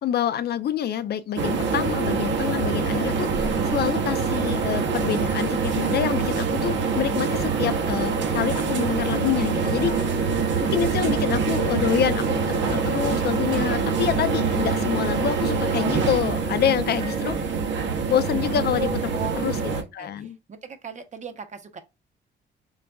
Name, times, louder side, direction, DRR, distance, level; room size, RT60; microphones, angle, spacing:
voice 1, 0.0-10.1 10.6-17.4 18.1-20.4, left 9 dB, 55° left, 0.5 m, -27 dB
sound 1, 1.4-19.8, right 5 dB, 65° right, 0.9 m, -25 dB
voice 2, 19.7-21.8, right 6 dB, 35° right, 0.7 m, -41 dB
3.9 x 3.3 x 2.3 m
cardioid pair, 90°, 20 cm